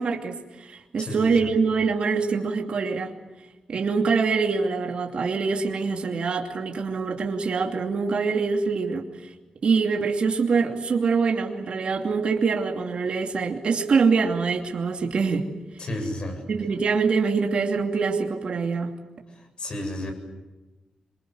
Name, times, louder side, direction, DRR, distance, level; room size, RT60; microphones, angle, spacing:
voice 1, 0.0-3.1 3.7-9.0 9.6-15.4 16.5-18.9, right 5 dB, 55° right, 2 dB, 2.7 m, -24 dB
voice 2, 1.0-1.5 15.8-16.4 19.3-20.1, left 1 dB, 45° left, 5 dB, 7.6 m, -32 dB
26.5 x 24.5 x 7.9 m, 1.1 s
wide cardioid pair, 135°, 2 cm